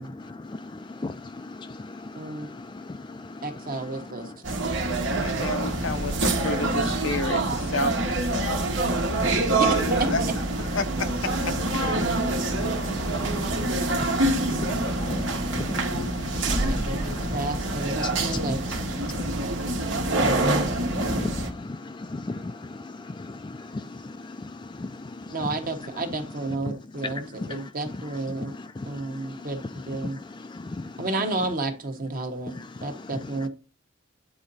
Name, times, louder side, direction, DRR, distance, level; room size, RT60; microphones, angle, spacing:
voice 1, 0.0-4.1 9.2-9.4 12.0-17.4 18.0-19.5 19.9-25.5 26.7-26.8 27.0-27.7 28.4-29.5 30.0-31.0 32.5-32.9, left 2 dB, 25° left, 0.3 m, -37 dB
voice 2, 2.1-2.5 3.4-4.3 9.3-10.0 16.6-18.6 25.3-28.5 28.8-30.2 31.0-32.5 32.8-33.5, right 2 dB, 45° right, 1.2 m, -31 dB
sound 1, 4.4-21.5, right 2 dB, 75° right, 1.4 m, -26 dB
voice 3, 5.2-8.6 9.4-10.2 10.5-11.5, left 3 dB, 85° left, 0.8 m, -31 dB
9.2 x 3.8 x 4.1 m
head